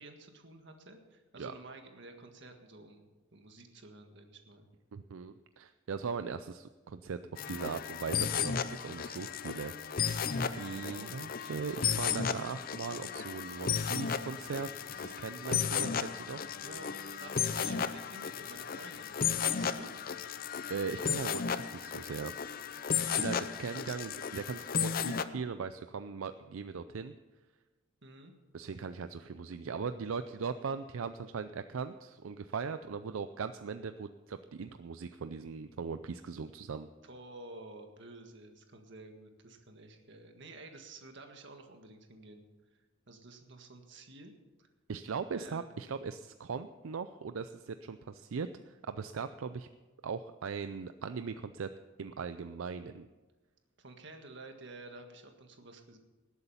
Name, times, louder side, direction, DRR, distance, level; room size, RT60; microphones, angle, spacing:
voice 1, 0.0-4.7 10.6-11.6 16.6-16.9 17.2-19.9 23.0-23.6 28.0-28.3 37.0-42.5 43.1-44.3 44.6-44.7 45.3-45.6 53.8-56.0, right 2 dB, 60° right, 4 dB, 1.7 m, -51 dB
voice 2, 4.9-9.7 10.3-16.5 20.7-22.3 23.2-27.1 28.5-36.9 44.9-49.7 50.0-51.7 52.0-53.1, right 5 dB, 80° right, 11 dB, 0.5 m, -39 dB
sound 1, 7.4-25.2, left 7 dB, 45° left, 0.6 m, -34 dB
19.0 x 8.2 x 5.6 m, 1.2 s
head